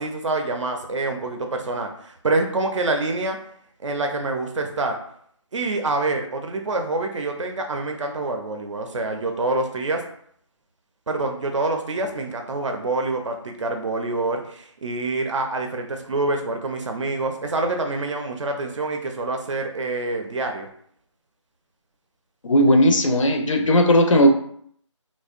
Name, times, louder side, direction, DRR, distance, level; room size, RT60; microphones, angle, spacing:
voice 1, 0.0-3.4 3.8-4.9 5.5-10.0 11.1-20.7, right 2 dB, 70° right, 3 dB, 0.4 m, -26 dB
voice 2, 22.4-24.3, equal, 75° left, 4 dB, 0.5 m, -16 dB
2.6 x 2.1 x 2.4 m, 0.65 s
figure-of-eight pair, 170°, 16 cm